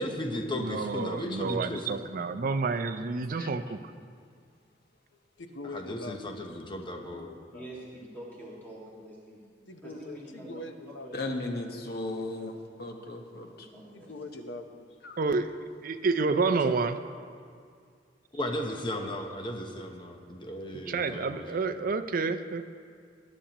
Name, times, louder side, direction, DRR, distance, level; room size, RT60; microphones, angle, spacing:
voice 1, 0.0-2.0 5.7-7.3 18.3-21.6, left 1 dB, 25° left, 3 dB, 0.9 m, -35 dB
voice 2, 0.6-3.8 15.2-17.0 20.9-22.6, right 4 dB, 50° right, 9 dB, 0.5 m, -29 dB
voice 3, 5.4-6.6 6.9-7.7 9.7-11.1 13.9-15.0 16.6-16.7 17.3-17.4 18.6-18.7, left 2 dB, 85° left, 6 dB, 0.9 m, -43 dB
voice 4, 7.5-9.4 9.8-11.4 13.4-14.1, right 1 dB, 10° left, -6 dB, 1.9 m, -46 dB
voice 5, 11.1-13.7 15.0-15.2, left 2 dB, 60° left, 3 dB, 1.2 m, -36 dB
20.0 x 9.9 x 2.9 m, 2.2 s
head